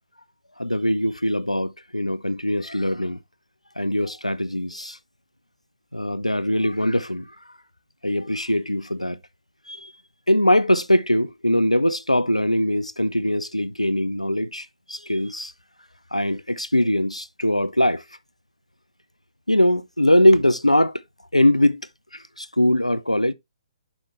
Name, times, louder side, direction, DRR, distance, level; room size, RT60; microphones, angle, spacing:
voice 1, 0.6-3.2 3.8-5.0 5.9-7.2 8.0-9.2 9.7-9.9 10.3-15.5 16.1-18.0 19.5-20.9 21.3-21.8 22.4-23.3, left 1 dB, 90° left, 0.6 m, -21 dB
6.6 x 5.8 x 3.2 m
figure-of-eight pair, 130°, 3 cm